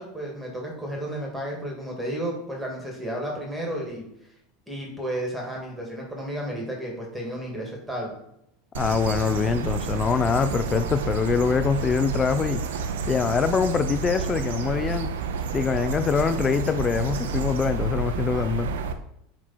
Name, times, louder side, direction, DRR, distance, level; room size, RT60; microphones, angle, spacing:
voice 1, 0.0-4.1 4.7-8.1, right 1 dB, 5° right, -2 dB, 2.0 m, -32 dB
sound 1, 8.7-18.9, right 4 dB, 90° right, 0.6 m, -29 dB
voice 2, 8.8-12.6 13.1-15.1 15.5-18.7, left 6 dB, 25° left, 11 dB, 0.5 m, -24 dB
8.6 x 3.1 x 4.2 m, 0.78 s
supercardioid pair, 120°, 0 cm